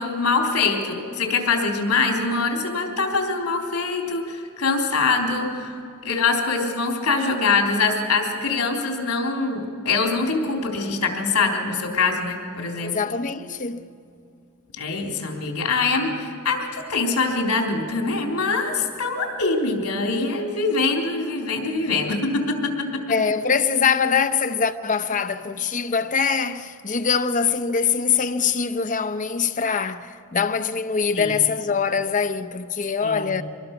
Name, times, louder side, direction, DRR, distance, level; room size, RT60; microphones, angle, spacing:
voice 1, 0.0-5.8 6.0-13.0 14.8-22.9 31.1-31.4 33.0-33.4, left 4 dB, 90° left, 3.7 m, -24 dB
voice 2, 12.8-13.9 23.1-33.4, left 6 dB, 35° left, 0.7 m, -23 dB
25.0 x 20.5 x 6.1 m
head